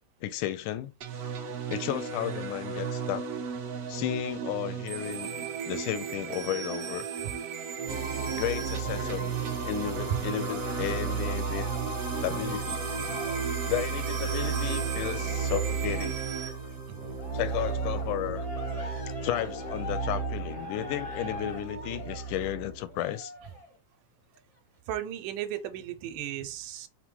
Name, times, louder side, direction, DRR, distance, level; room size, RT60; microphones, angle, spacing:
voice 1, 0.2-0.9 1.7-3.3 3.9-5.3 5.7-7.1 8.4-9.3 9.6-11.7 12.2-12.8 13.7-16.2 17.3-18.5 19.2-23.3, left 12 dB, 85° left, 2.0 m, -33 dB
sound 1, 1.0-16.5, right 7 dB, 65° right, 1.6 m, -35 dB
sound 2, 7.9-23.0, right 5 dB, 40° right, 1.0 m, -34 dB
Cheering, 10.4-16.8 17.1-23.7 24.3-24.4, left 3 dB, 40° left, 0.4 m, -43 dB
voice 2, 16.9-17.2 24.9-26.9, right 11 dB, 85° right, 2.2 m, -36 dB
5.5 x 2.2 x 4.4 m
omnidirectional pair, 3.6 m